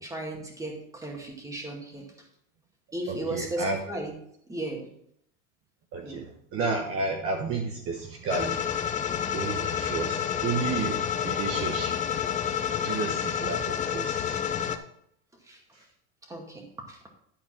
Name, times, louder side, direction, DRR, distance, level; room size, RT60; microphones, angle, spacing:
voice 1, 0.0-2.1 2.9-4.1 4.5-4.9 6.0-6.2 9.7-9.8 12.9-13.0 15.4-15.6 16.3-17.0, right 1 dB, 10° right, 1 dB, 2.0 m, -36 dB
voice 2, 3.1-3.8 5.9-8.6 9.3-12.1 12.8-14.5 15.7-15.8, right 4 dB, 35° right, 3 dB, 1.1 m, -32 dB
sound 1, 8.3-14.8, left 8 dB, 20° left, 0.6 m, -29 dB
11.5 x 4.4 x 5.9 m, 0.70 s
supercardioid pair, 150°, 37 cm